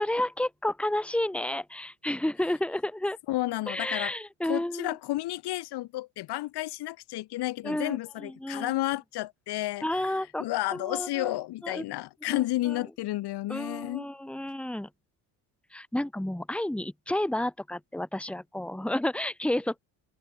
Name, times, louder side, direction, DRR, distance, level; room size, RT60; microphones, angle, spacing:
voice 1, 0.0-3.2 3.7-5.0 7.6-8.7 9.8-10.4 10.7-11.3 11.6-11.8 12.3-12.8 13.5-14.9 15.7-19.8, left 1 dB, 5° left, 2.2 m, -31 dB
voice 2, 3.3-4.1 4.4-10.1 10.4-14.1, left 16 dB, 70° left, 2.5 m, -31 dB
open air
cardioid pair, 105°, 41 cm